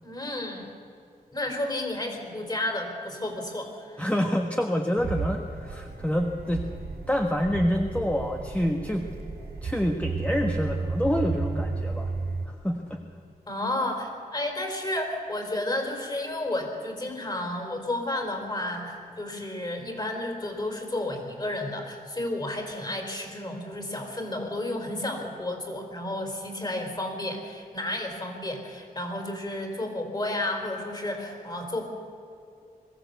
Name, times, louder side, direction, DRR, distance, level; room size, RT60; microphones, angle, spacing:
voice 1, 0.0-0.6 1.3-4.1 13.5-31.9, left 1 dB, 25° left, 3 dB, 4.6 m, -32 dB
voice 2, 4.0-6.6 7.1-9.1 9.6-12.1 12.5-13.0, equal, 10° left, 2 dB, 1.5 m, -27 dB
sound 1, 5.0-12.5, right 4 dB, 85° right, 4.6 m, -33 dB
22.0 x 15.0 x 8.2 m, 2.5 s
cardioid pair, 80°, 16 cm